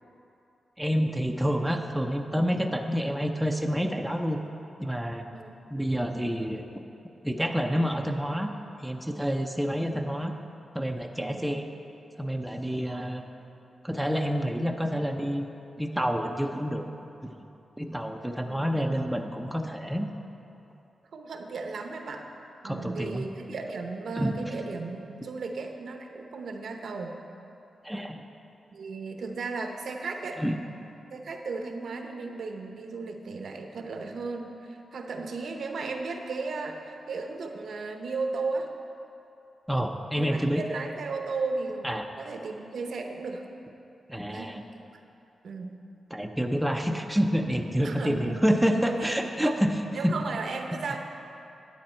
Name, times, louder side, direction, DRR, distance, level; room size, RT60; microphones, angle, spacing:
voice 1, 0.8-4.4 4.8-5.3 5.7-6.6 7.2-8.5 8.8-10.3 10.7-11.6 12.2-13.2 13.8-15.5 15.8-16.9 17.8-20.1 22.6-23.3 24.2-24.4 27.8-28.2 30.4-30.6 39.7-40.6 41.8-42.0 44.1-44.6 46.1-49.7 50.0-50.1, equal, ahead, 3 dB, 0.6 m, -28 dB
voice 2, 11.1-11.4 12.7-13.1 18.3-18.9 21.1-22.3 22.6-27.2 28.7-30.4 31.1-38.7 40.2-43.4 44.3-44.6 45.4-45.8 47.8-48.5 48.8-49.6 49.9-51.0, right 3 dB, 75° right, 4 dB, 0.8 m, -35 dB
10.5 x 9.0 x 4.4 m, 2.8 s
wide cardioid pair, 105°, 0 cm